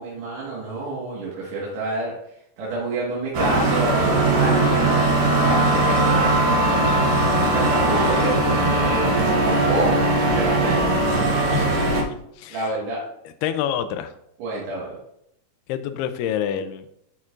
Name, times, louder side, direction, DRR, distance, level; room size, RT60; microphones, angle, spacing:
voice 1, 0.0-2.1 2.6-4.7 5.4-6.3 7.4-11.0 12.5-13.0 14.4-15.0, right 2 dB, 85° right, -6 dB, 3.8 m, -28 dB
sound 1, 3.3-12.0, right 2 dB, 65° right, 1.8 m, -19 dB
voice 2, 11.5-12.0 12.4-12.7 13.4-14.1 15.7-16.9, left 10 dB, 90° left, 9 dB, 2.6 m, -27 dB
12.5 x 4.4 x 2.5 m, 0.76 s
omnidirectional pair, 4.5 m